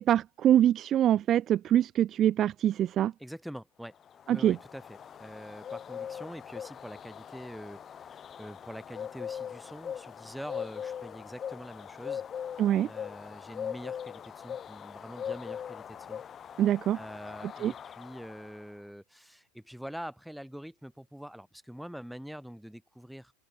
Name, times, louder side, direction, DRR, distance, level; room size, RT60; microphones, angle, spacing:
voice 1, 0.0-3.1 4.3-4.6 12.6-12.9 16.6-17.0 17.6-17.7, right 11 dB, 35° right, 0.5 m, -24 dB
voice 2, 3.2-4.0 4.3-12.2 12.8-16.2 16.9-23.3, equal, ahead, 2.3 m, -45 dB
sound 1, 4.0-18.6, left 8 dB, 30° left, 0.8 m, -41 dB
open air
supercardioid pair, 120°, 0 cm